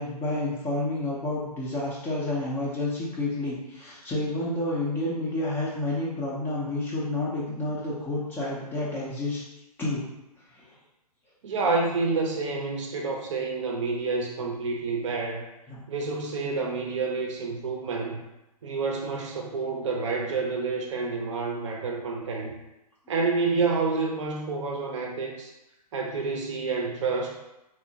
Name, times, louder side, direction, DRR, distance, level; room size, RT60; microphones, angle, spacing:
voice 1, 0.0-9.4 9.8-10.0 10.6-10.7 15.7-15.8, left 2 dB, 10° left, -6 dB, 0.4 m, -30 dB
voice 2, 11.4-15.5 15.9-18.2 18.6-22.5 23.1-25.5 25.9-27.3, right 4 dB, 50° right, 1 dB, 0.5 m, -28 dB
2.9 x 2.0 x 2.7 m, 0.92 s
figure-of-eight pair, 120°, 20 cm